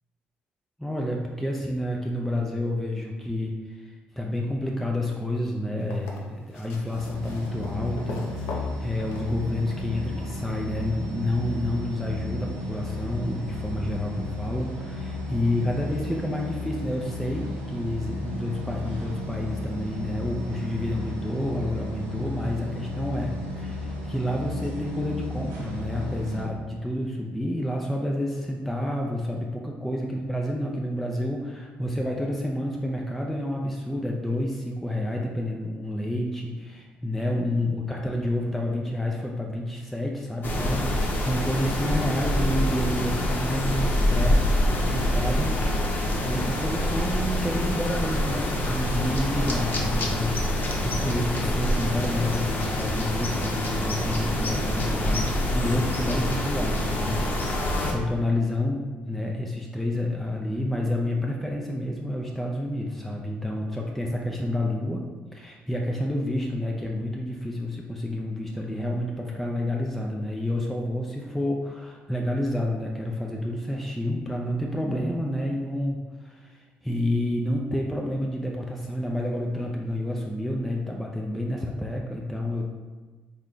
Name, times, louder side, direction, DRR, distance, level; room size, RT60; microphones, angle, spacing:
voice 1, 0.8-45.6 46.2-55.3 55.5-65.1 65.3-82.6, left 1 dB, 5° left, -1 dB, 0.4 m, -29 dB
sound 1, 5.8-9.9 11.2-11.3, left 2 dB, 85° left, 0.5 m, -41 dB
sound 2, 6.9-26.5, left 2 dB, 80° right, 0.7 m, -34 dB
sound 3, 40.4-57.9, left 1 dB, 40° left, 0.7 m, -26 dB
3.5 x 2.2 x 3.7 m, 1.3 s
hypercardioid pair, 60°, 5 cm